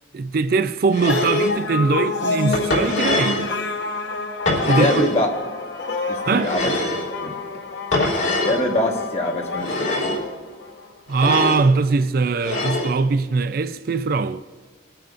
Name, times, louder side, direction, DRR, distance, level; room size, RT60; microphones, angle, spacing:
voice 1, 0.1-3.5 4.7-5.1 6.3-6.5 11.1-14.4, right 4 dB, 50° right, 0.4 m, -21 dB
sound 1, 0.9-1.5 2.5-3.5 4.5-5.2 6.4-7.1 7.9-8.6 9.5-10.2 11.1-11.7 12.4-13.0, left 2 dB, 85° left, 2.5 m, -24 dB
sound 2, 1.1-10.9, left 3 dB, 70° left, 0.9 m, -28 dB
voice 2, 4.6-5.4 6.1-6.7 7.2-7.3 8.4-10.1, left 1 dB, 35° left, 1.4 m, -24 dB
24.0 x 9.0 x 2.6 m
head